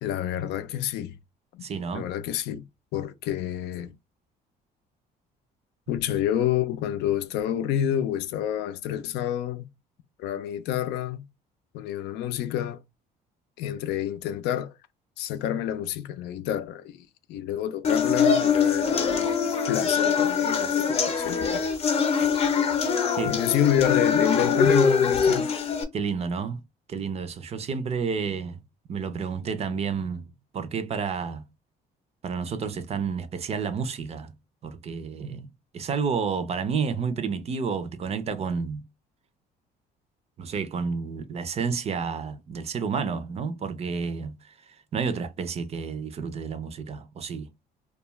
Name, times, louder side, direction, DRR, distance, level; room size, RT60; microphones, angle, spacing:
voice 1, 0.0-1.2 1.5-1.6 1.9-2.6 2.9-3.9 5.9-9.7 10.2-11.3 11.7-12.8 13.6-14.7 15.2-19.3 19.7-21.7 23.3-25.5, left 11 dB, 85° left, 0.4 m, -28 dB
voice 2, 1.6-2.1 23.1-23.3 25.9-26.6 26.9-28.6 28.9-30.2 30.5-31.4 32.2-34.3 34.6-35.5 35.7-38.8 40.4-44.3 44.9-47.5, right 5 dB, 40° right, 0.5 m, -30 dB
sound 1, 17.8-25.8, left 6 dB, 35° left, 0.7 m, -23 dB
2.3 x 2.3 x 3.0 m
cardioid pair, 110°, 17 cm